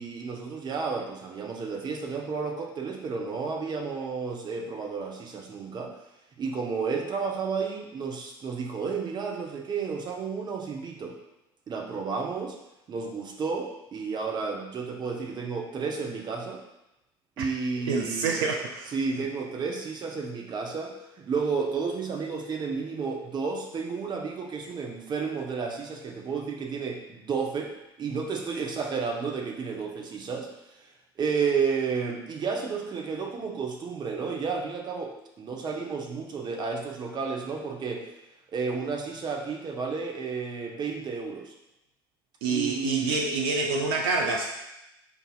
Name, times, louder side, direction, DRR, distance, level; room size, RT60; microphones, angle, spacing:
voice 1, 0.0-6.0 6.4-11.2 11.7-12.6 12.9-16.6 17.4-18.4 18.9-27.7 28.0-30.5 30.8-30.9 31.2-38.1 38.5-41.5 42.5-43.2, right 5 dB, 35° right, 1 dB, 0.7 m, -32 dB
voice 2, 17.9-18.9 42.4-44.5, right 4 dB, 70° right, 1 dB, 0.4 m, -27 dB
5.3 x 2.7 x 2.3 m, 0.89 s
figure-of-eight pair, 60°, 13 cm